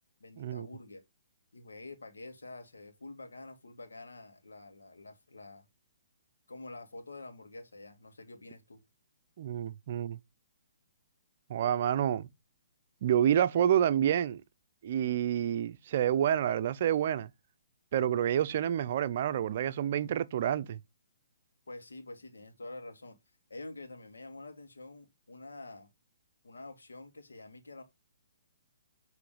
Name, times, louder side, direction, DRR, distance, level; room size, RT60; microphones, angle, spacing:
voice 1, 0.2-1.0 1.5-5.7 6.5-8.8 21.7-23.1 23.5-25.9 26.4-27.8, left 2 dB, 90° left, 1.7 m, -47 dB
voice 2, 9.4-10.2 11.5-12.3 13.0-14.4 14.8-17.3 17.9-20.8, right 10 dB, 50° right, 0.6 m, -28 dB
7.6 x 3.3 x 4.9 m
hypercardioid pair, 140°, 0 cm